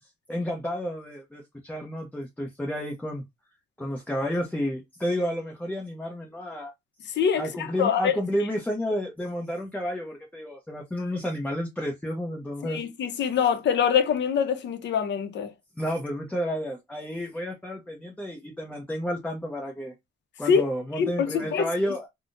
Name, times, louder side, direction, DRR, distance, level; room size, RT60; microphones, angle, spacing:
voice 1, 0.3-3.2 3.8-6.7 7.4-12.8 15.8-19.9 20.4-22.1, equal, 5° left, 0.9 m, -31 dB
voice 2, 7.2-8.2 12.6-15.5 20.5-20.6 21.0-21.7, left 7 dB, 65° left, 0.8 m, -24 dB
3.5 x 2.3 x 2.6 m
cardioid pair, 90°, 20 cm